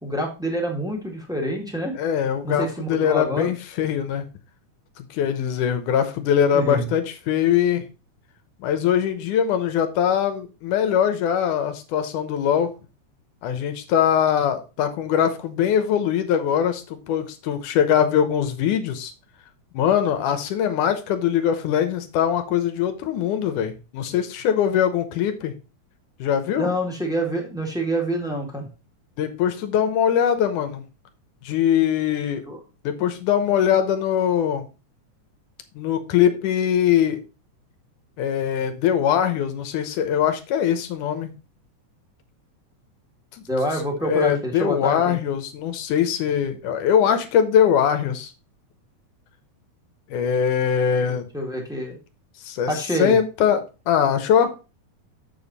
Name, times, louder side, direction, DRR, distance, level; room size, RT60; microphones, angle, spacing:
voice 1, 0.0-1.9 2.4-3.5 6.5-6.8 26.5-28.7 32.5-32.6 43.5-45.2 51.1-52.0 52.7-53.2, equal, ahead, -1 dB, 1.5 m, -27 dB
voice 2, 1.9-4.3 5.0-7.8 8.6-12.7 13.4-19.1 19.7-25.5 26.2-26.7 29.2-30.8 31.4-32.4 32.8-34.7 35.8-37.2 38.2-41.3 44.0-48.3 50.1-51.3 52.4-54.6, left 9 dB, 85° left, 8 dB, 2.5 m, -22 dB
7.1 x 6.9 x 4.1 m, 0.31 s
omnidirectional pair, 3.5 m